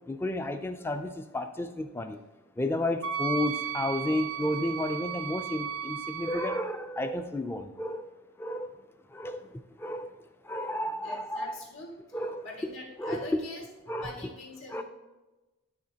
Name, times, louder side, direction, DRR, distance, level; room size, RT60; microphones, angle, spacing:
voice 1, 0.1-2.2 2.6-8.1 8.4-8.7 9.1-10.2 10.4-11.6 12.1-12.7 13.0-13.4 13.9-14.1 14.7-14.8, left 1 dB, 10° left, 8 dB, 0.3 m, -32 dB
Wind instrument woodwind instrument, 3.0-6.6, right 8 dB, 60° right, 0.4 m, -35 dB
voice 2, 11.0-11.9 12.4-13.6 14.0-14.8, left 2 dB, 60° left, -3 dB, 2.0 m, -43 dB
12.0 x 4.2 x 2.8 m, 1.1 s
head